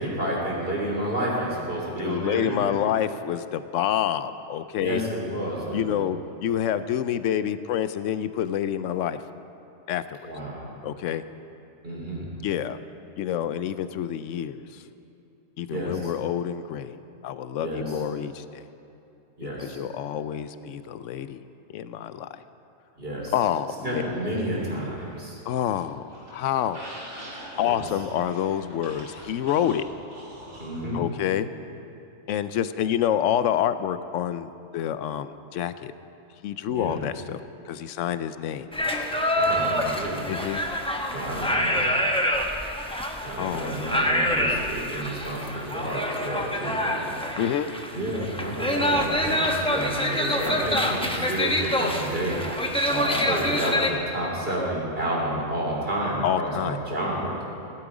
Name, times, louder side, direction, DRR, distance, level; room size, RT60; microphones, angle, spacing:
voice 1, 0.0-2.7 4.8-6.0 10.2-10.7 11.8-12.3 15.7-16.1 17.6-18.0 19.4-19.8 23.0-23.3 23.8-25.4 27.6-27.8 30.6-31.1 36.7-37.0 39.4-40.3 41.1-41.9 43.2-47.2 47.9-57.4, right 1 dB, 50° right, -3 dB, 3.4 m, -30 dB
voice 2, 2.0-5.0 5.7-9.2 9.9-10.2 10.8-11.2 12.4-12.8 13.2-14.8 15.6-17.0 17.2-18.6 19.6-21.4 21.7-22.4 23.3-24.0 25.5-26.8 27.6-29.9 30.9-31.5 32.3-35.9 36.4-37.4 37.7-38.7 40.3-40.6 43.4-43.9 47.4-47.7 56.2-56.8, left 10 dB, 80° left, 13 dB, 0.9 m, -27 dB
sound 1, 23.8-25.2 25.5-30.9, right 1 dB, 70° right, 4.1 m, -44 dB
sound 2, 38.7-53.9, left 1 dB, 5° left, 0.8 m, -26 dB
16.5 x 12.0 x 4.9 m, 2.9 s
omnidirectional pair, 1.3 m